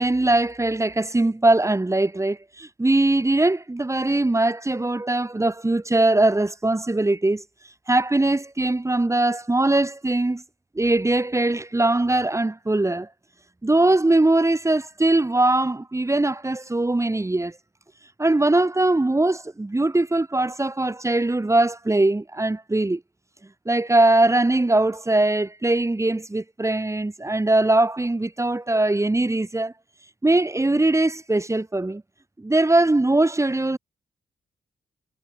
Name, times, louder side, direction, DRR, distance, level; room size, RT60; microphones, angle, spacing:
voice 1, 0.0-7.4 7.9-10.4 10.8-13.1 13.6-17.5 18.2-23.0 23.7-29.7 30.2-32.0 32.4-33.8, right 2 dB, 15° right, 1.1 m, -21 dB
cardioid pair, 60°, 17 cm